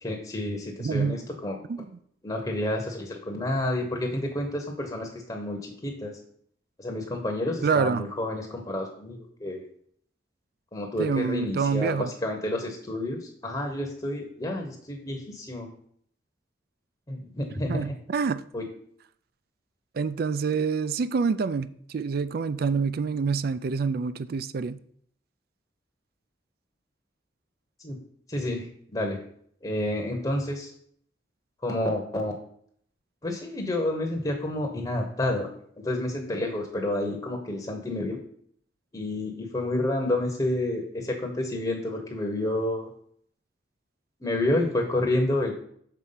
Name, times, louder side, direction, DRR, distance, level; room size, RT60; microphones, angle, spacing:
voice 1, 0.0-1.6 2.2-6.2 6.8-9.6 10.7-15.7 17.1-17.9 18.5-18.7 27.8-28.0 28.3-29.2 29.6-30.7 31.6-32.3 33.2-35.5 35.8-38.2 38.9-42.9 44.2-45.5, left 1 dB, 20° left, 0.9 m, -29 dB
voice 2, 0.8-1.2 1.7-1.8 7.6-8.0 11.0-12.1 17.7-18.4 19.9-24.8, right 5 dB, 55° right, 0.4 m, -27 dB
6.7 x 4.5 x 5.6 m
head